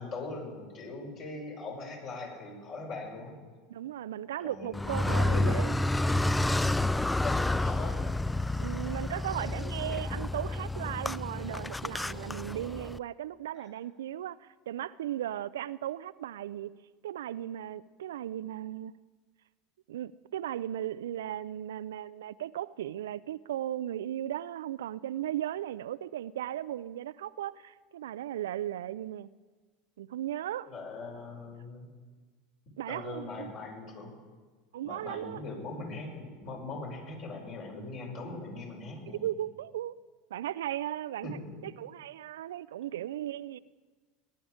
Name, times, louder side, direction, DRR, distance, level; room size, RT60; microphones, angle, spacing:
voice 1, 0.0-3.4 4.4-5.7 7.2-8.0 13.5-13.7 30.6-31.9 32.9-34.1 34.8-39.3 41.2-41.7, left 3 dB, 50° left, -1 dB, 5.8 m, -41 dB
voice 2, 3.7-5.7 8.6-16.7 17.0-18.9 19.9-29.3 30.0-30.7 32.8-33.5 34.7-35.4 39.2-39.9 40.3-43.6, right 12 dB, 70° right, 19 dB, 0.4 m, -36 dB
Car, 4.7-13.0, left 2 dB, 10° left, 0.4 m, -30 dB
19.0 x 11.5 x 4.9 m, 1.4 s
figure-of-eight pair, 75°, 0 cm